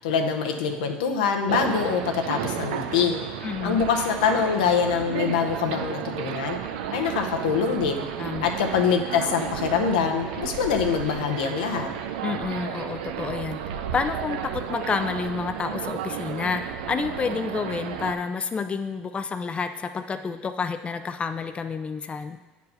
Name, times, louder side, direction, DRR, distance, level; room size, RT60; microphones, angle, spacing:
voice 1, 0.0-3.2 3.6-6.6 6.9-8.0 8.4-11.9, left 6 dB, 90° left, 4 dB, 0.8 m, -24 dB
sound 1, 1.5-18.1, right 9 dB, 85° right, 0.5 m, -33 dB
voice 2, 3.4-3.8 8.2-8.5 12.2-13.6 13.9-22.4, left 5 dB, 25° left, 8 dB, 0.5 m, -29 dB
8.2 x 4.6 x 5.5 m, 1.3 s
supercardioid pair, 85°, 4 cm